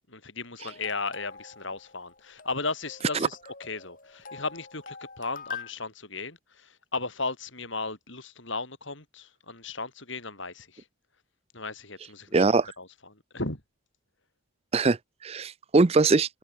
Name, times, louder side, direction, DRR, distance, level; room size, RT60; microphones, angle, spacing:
voice 1, 0.1-10.8 11.5-12.4 12.8-13.6, left 3 dB, 60° left, 6.0 m, -36 dB
sound 1, 0.6-5.7, left 6 dB, 40° left, 6.8 m, -44 dB
voice 2, 12.3-12.7 14.7-16.4, right 3 dB, 30° right, 0.5 m, -22 dB
open air
head